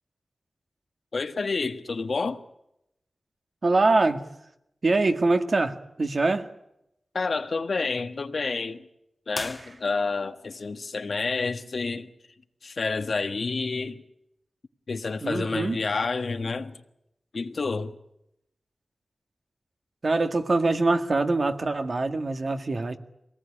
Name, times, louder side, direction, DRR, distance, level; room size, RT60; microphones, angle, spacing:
voice 1, 1.1-2.4 7.1-8.8 9.3-12.1 12.6-14.0 14.9-16.8 17.3-17.9, left 4 dB, 70° left, 1.5 m, -29 dB
voice 2, 3.6-4.3 4.8-6.5 15.2-15.8 20.0-23.0, right 3 dB, 60° right, 1.8 m, -24 dB
sound 1, 9.3-10.3, left 1 dB, 20° left, 1.4 m, -38 dB
23.0 x 18.5 x 10.0 m
cardioid pair, 55°, 0 cm